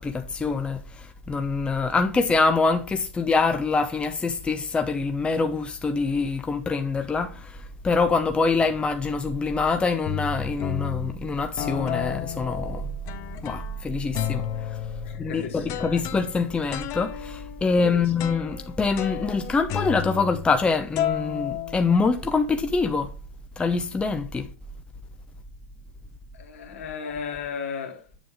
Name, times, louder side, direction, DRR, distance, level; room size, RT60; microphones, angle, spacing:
voice 1, 0.0-12.9 13.4-14.5 15.2-23.1 23.6-24.5, left 4 dB, 15° left, 0.8 m, -25 dB
sound 1, 8.6-9.0 9.6-9.7 10.1-11.1 11.6-13.8 14.1-20.7 21.0-22.4, left 10 dB, 45° left, 1.0 m, -33 dB
voice 2, 15.0-16.0 17.7-18.1 26.3-28.1, left 6 dB, 60° left, 2.4 m, -35 dB
8.6 x 7.3 x 3.5 m
figure-of-eight pair, 90°, 8 cm